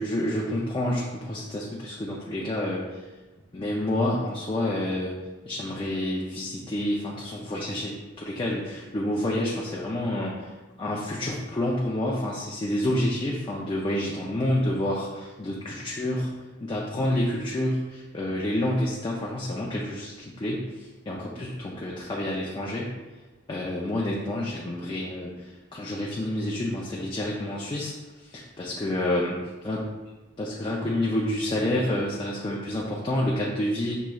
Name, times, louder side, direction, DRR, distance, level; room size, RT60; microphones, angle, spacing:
voice 1, 0.0-3.0 3.5-5.2 5.5-10.5 10.8-16.3 16.6-22.9 23.5-27.9 28.2-29.3 29.6-29.8 30.4-34.0, left 1 dB, 25° left, -4 dB, 0.4 m, -28 dB
6.1 x 3.1 x 2.3 m, 1.2 s
head